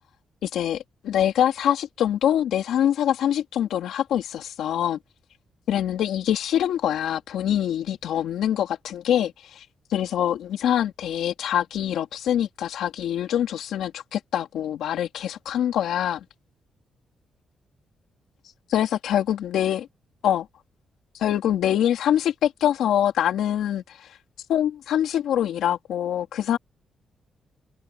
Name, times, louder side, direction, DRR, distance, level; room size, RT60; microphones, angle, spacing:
voice 1, 0.4-5.0 5.7-9.6 9.9-16.2 18.7-19.9 20.2-20.5 21.1-24.2 24.5-26.6, left 10 dB, 90° left, 3.0 m, -24 dB
cardioid pair, 135°, 0 cm